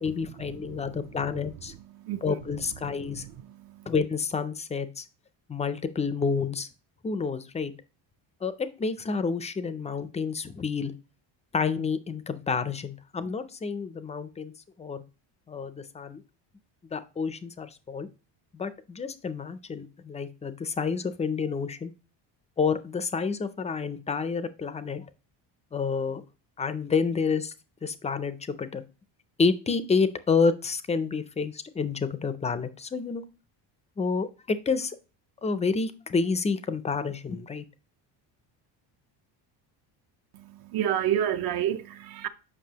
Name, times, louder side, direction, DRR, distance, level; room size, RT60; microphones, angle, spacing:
voice 1, 0.0-1.7 2.2-3.2 3.9-5.1 5.5-6.7 7.0-7.7 8.4-10.9 11.5-14.5 14.8-15.0 15.5-16.2 16.9-18.1 18.5-21.9 22.6-25.0 25.7-26.2 26.6-27.5 27.8-28.8 29.4-33.2 34.0-35.0 35.4-37.6, left 5 dB, 15° left, 0.3 m, -29 dB
voice 2, 0.7-1.0 1.9-2.4 3.2-3.9 40.3-42.3, right 10 dB, 55° right, 0.6 m, -30 dB
7.4 x 5.5 x 2.8 m
cardioid pair, 150°, 44 cm